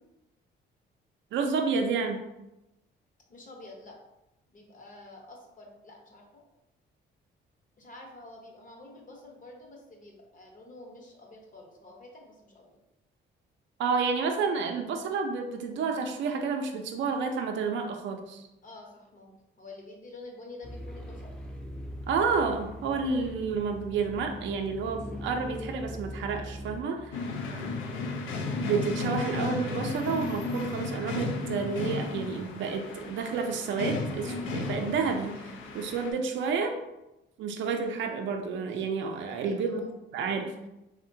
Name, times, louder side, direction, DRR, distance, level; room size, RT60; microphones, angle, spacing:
voice 1, 1.3-2.2 13.8-18.5 22.1-27.3 28.6-36.7 37.4-39.8 40.1-40.5, right 5 dB, 70° right, 4 dB, 0.4 m, -30 dB
voice 2, 3.3-4.0 4.5-6.4 7.8-12.8 18.6-19.3 19.6-21.3 27.6-28.5 39.3-39.9, left 2 dB, 40° left, -1 dB, 0.8 m, -48 dB
sound 1, 20.6-26.8, equal, 5° left, 0.4 m, -41 dB
sound 2, 27.1-36.1, left 3 dB, 85° left, 0.4 m, -34 dB
3.5 x 2.1 x 2.6 m, 0.93 s
cardioid pair, 90°, 20 cm